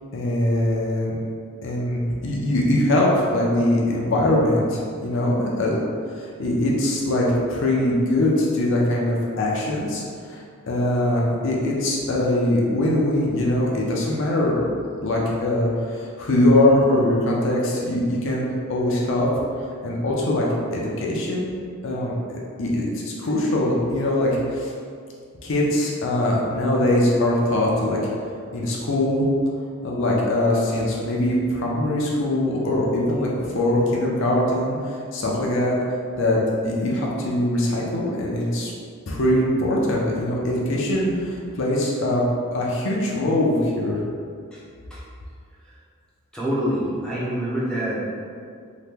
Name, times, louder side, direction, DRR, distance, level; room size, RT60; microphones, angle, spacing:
voice 1, 0.1-1.2 1.6-5.8 6.1-10.0 10.3-10.4 10.7-14.6 15.0-19.3 19.8-21.5 21.8-22.1 22.6-24.7 25.4-28.0 28.5-29.3 29.8-35.8 36.2-38.7 39.1-42.2 42.5-44.0, left 1 dB, 55° left, -3 dB, 0.5 m, -22 dB
voice 2, 46.3-48.0, equal, 5° left, -9 dB, 0.5 m, -26 dB
2.8 x 2.2 x 3.4 m, 2.2 s
head